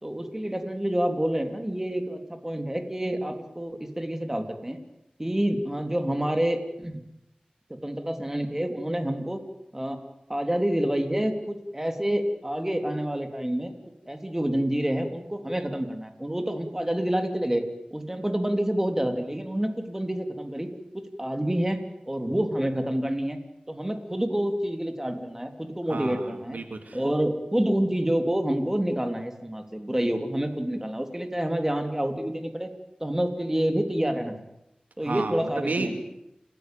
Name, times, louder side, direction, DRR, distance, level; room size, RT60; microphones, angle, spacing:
voice 1, 0.0-4.8 5.2-7.0 7.8-9.4 9.7-10.0 10.3-13.7 14.1-17.6 17.9-20.7 20.9-23.4 23.7-26.6 26.9-32.7 33.0-34.3 35.0-35.9, right 1 dB, 15° right, 6 dB, 3.2 m, -28 dB
voice 2, 25.9-27.0 35.1-36.0, right 3 dB, 90° right, 7 dB, 2.6 m, -32 dB
29.0 x 16.0 x 9.3 m, 0.86 s
wide cardioid pair, 70°, 3 cm